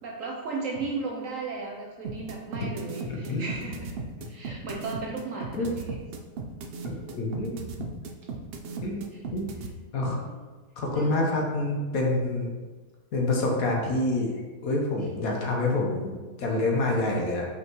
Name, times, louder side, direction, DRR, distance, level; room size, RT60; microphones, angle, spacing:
voice 1, 0.0-3.9 4.3-5.9 10.3-10.4 10.9-11.2, right 3 dB, 65° right, -1 dB, 0.9 m, -35 dB
sound 1, 2.0-9.7, right 4 dB, 85° right, 0.5 m, -36 dB
voice 2, 3.1-3.6 5.5-5.7 6.8-7.6 8.8-9.1 9.3-9.5 9.9-10.2 10.8-12.5 13.1-14.3 14.6-17.5, left 2 dB, 65° left, 0 dB, 1.3 m, -27 dB
5.6 x 5.5 x 3.0 m, 1.3 s
omnidirectional pair, 1.7 m